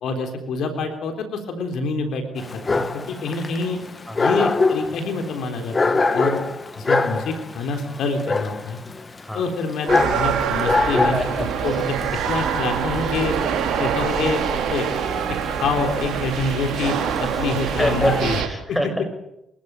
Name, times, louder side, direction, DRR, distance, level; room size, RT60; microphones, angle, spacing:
voice 1, 0.0-3.8 4.2-6.4 6.8-8.8 9.3-12.0 12.3-13.4 13.8-14.4 14.7-14.9 15.6-18.4, left 3 dB, 70° left, 5 dB, 3.7 m, -26 dB
Dog, 2.4-18.4, left 3 dB, 35° left, 1.9 m, -25 dB
voice 2, 9.2-9.5 10.8-11.9 17.7-19.1, equal, 5° left, 7 dB, 6.7 m, -27 dB
sound 1, 9.9-18.5, right 7 dB, 70° right, 4.4 m, -25 dB
26.5 x 13.5 x 8.9 m, 0.86 s
hypercardioid pair, 55°, 0 cm